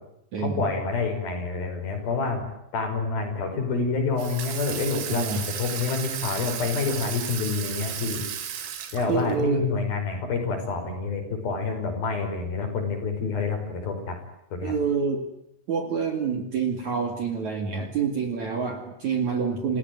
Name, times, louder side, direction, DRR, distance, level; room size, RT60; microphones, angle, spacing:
voice 1, 0.4-2.4 2.7-8.2 8.9-14.2 14.5-14.8, left 4 dB, 50° left, 5 dB, 7.0 m, -28 dB
Water tap faucet / Sink (filling or washing), 4.2-9.4, right 9 dB, 90° right, 4.9 m, -34 dB
voice 2, 5.1-5.4 9.1-9.7 14.6-15.2 15.7-19.8, right 6 dB, 50° right, 6 dB, 2.8 m, -27 dB
28.0 x 17.5 x 9.5 m, 0.84 s
omnidirectional pair, 5.4 m